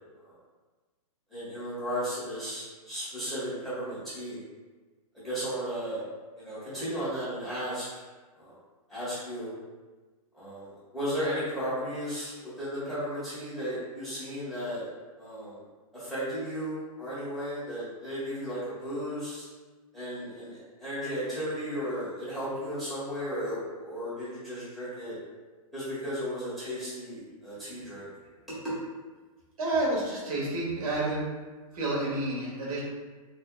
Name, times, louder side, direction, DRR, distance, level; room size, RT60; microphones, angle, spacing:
voice 1, 1.3-4.4 5.1-6.0 6.4-7.9 8.4-8.5 8.9-9.5 10.3-14.9 15.2-15.6 15.9-19.4 19.9-25.1 25.7-28.1 28.5-28.7, equal, ahead, -13 dB, 1.4 m, -35 dB
voice 2, 29.6-31.2 31.7-32.8, right 2 dB, 75° right, -5 dB, 1.2 m, -29 dB
4.3 x 2.6 x 2.3 m, 1.3 s
hypercardioid pair, 145°, 19 cm